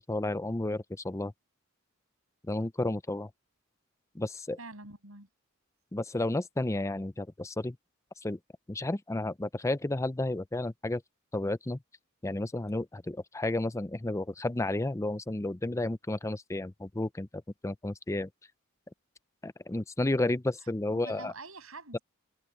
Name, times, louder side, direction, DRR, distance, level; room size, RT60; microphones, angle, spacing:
voice 1, 0.1-1.3 2.5-3.3 4.1-4.6 5.9-7.8 8.2-8.4 8.7-11.0 11.3-11.8 12.2-17.3 17.6-18.3 19.4-21.3, left 2 dB, 15° left, 0.5 m, -32 dB
voice 2, 4.6-5.3 20.9-22.0, right 3 dB, 75° right, 7.3 m, -46 dB
head